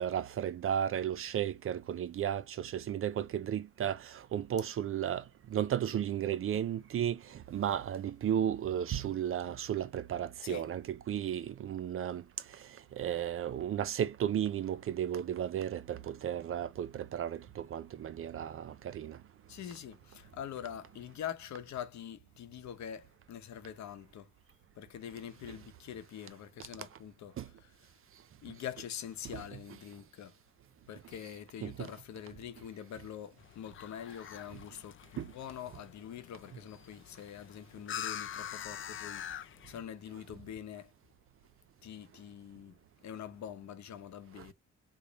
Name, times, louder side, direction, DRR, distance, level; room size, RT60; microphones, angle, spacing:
voice 1, 0.0-5.2 5.5-12.2 13.0-19.2 27.4-27.5 29.3-29.4 31.6-31.9 35.2-35.3, right 10 dB, 45° right, 0.5 m, -34 dB
voice 2, 19.5-24.3 24.8-27.4 28.4-30.4 30.9-40.9 41.8-44.5, left 9 dB, 65° left, 0.9 m, -45 dB
sound 1, 33.4-39.8, left 9 dB, 40° left, 0.5 m, -44 dB
3.1 x 2.2 x 4.0 m
cardioid pair, 90°, 30 cm